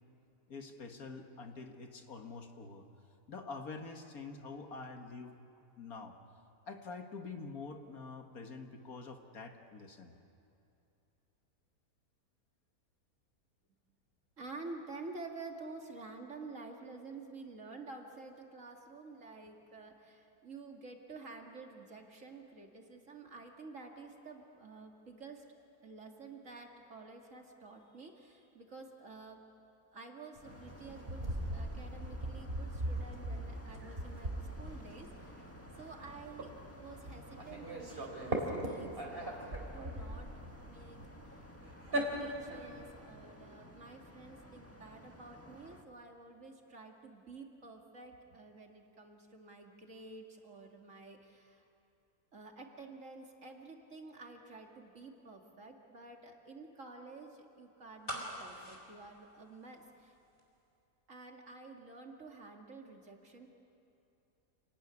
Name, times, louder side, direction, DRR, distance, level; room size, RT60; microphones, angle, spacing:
voice 1, 0.5-2.9 3.3-5.4 5.8-6.2 6.7-10.1, left 4 dB, 65° left, 4 dB, 2.1 m, -46 dB
voice 2, 14.4-29.4 29.9-39.4 39.7-41.5 41.9-51.6 52.3-60.2 61.1-63.5, right 3 dB, 50° right, 2 dB, 2.7 m, -50 dB
sound 1, 30.4-45.8, left 1 dB, 10° left, 1.6 m, -55 dB
sound 2, 30.4-43.0, right 1 dB, 35° right, 3.8 m, -40 dB
sound 3, 58.0-60.1 60.4-60.5, equal, 30° left, 4.7 m, -43 dB
29.0 x 19.5 x 9.8 m, 2.8 s
omnidirectional pair, 1.7 m